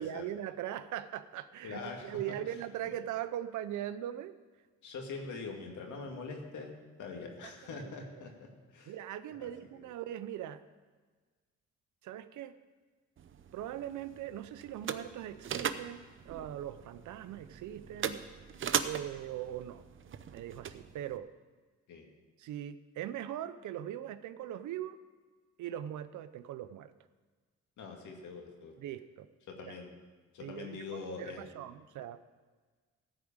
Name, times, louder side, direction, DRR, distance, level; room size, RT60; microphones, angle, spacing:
voice 1, 0.0-4.4 7.7-7.9 8.9-10.6 12.0-12.5 13.5-16.0 16.3-18.2 18.8-19.8 20.3-21.3 22.4-25.0 25.6-26.9 28.8-29.3 29.7-29.8 30.4-32.2, right 11 dB, 75° right, 13 dB, 0.7 m, -40 dB
voice 2, 1.6-2.9 4.8-6.7 7.0-8.9 9.4-9.5 21.9-22.0 27.8-28.7 29.5-29.9 30.3-31.5, left 4 dB, 75° left, 2 dB, 2.2 m, -43 dB
sound 1, 13.2-21.2, right 8 dB, 40° right, 0.7 m, -40 dB
14.5 x 5.0 x 8.8 m, 1.4 s
cardioid pair, 90°, 30 cm